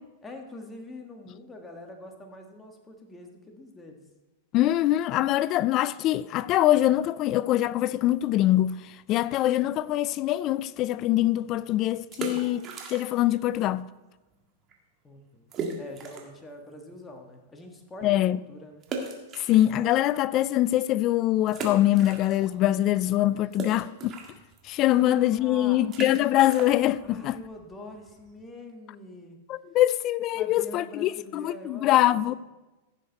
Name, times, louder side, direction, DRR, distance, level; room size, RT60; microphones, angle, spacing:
voice 1, 0.2-4.0 15.0-15.5 15.8-18.8 24.9-25.8 27.0-29.4 30.3-32.4, left 1 dB, 15° left, 1.7 m, -44 dB
voice 2, 4.5-13.9 18.0-18.4 19.5-24.2 24.6-27.4 29.5-32.3, left 14 dB, 40° left, 0.4 m, -23 dB
sound 1, 12.0-13.4 13.6-13.7 14.3-14.4 14.7-14.8 15.5-16.4 16.9-17.0 18.8-20.2 20.7-20.8 21.5-22.7 22.9-28.4, right 4 dB, 30° right, 1.8 m, -38 dB
15.0 x 6.7 x 4.1 m
hypercardioid pair, 120°, 0 cm